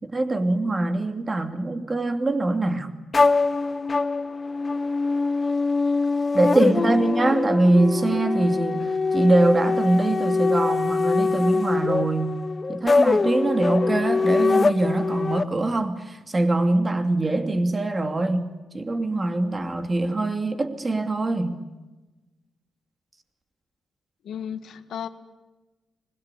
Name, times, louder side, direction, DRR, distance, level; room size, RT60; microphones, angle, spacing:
voice 1, 0.0-2.9 6.3-12.4 12.7-21.6, right 2 dB, 25° right, 7 dB, 2.7 m, -23 dB
sound 1, 3.1-15.4, left 4 dB, 30° left, 0.8 m, -23 dB
voice 2, 6.6-7.1 24.2-25.1, left 8 dB, 80° left, 10 dB, 1.8 m, -35 dB
24.5 x 21.5 x 9.9 m, 1.1 s
cardioid pair, 110°, 0 cm